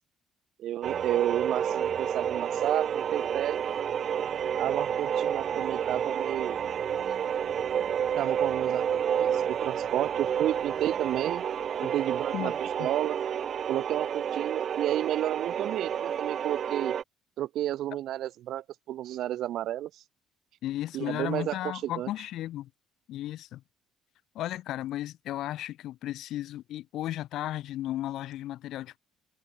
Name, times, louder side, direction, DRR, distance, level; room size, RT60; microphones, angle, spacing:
voice 1, 0.6-3.6 4.6-6.6 8.2-11.5 11.8-13.2 13.7-16.9 17.4-19.9 20.9-22.1, right 13 dB, 65° right, 2.2 m, -31 dB
sound 1, 0.8-17.0, right 8 dB, 45° right, 0.6 m, -30 dB
voice 2, 20.6-22.7 23.1-23.6 24.3-29.0, left 14 dB, 65° left, 4.5 m, -34 dB
cardioid pair, 120°, 0 cm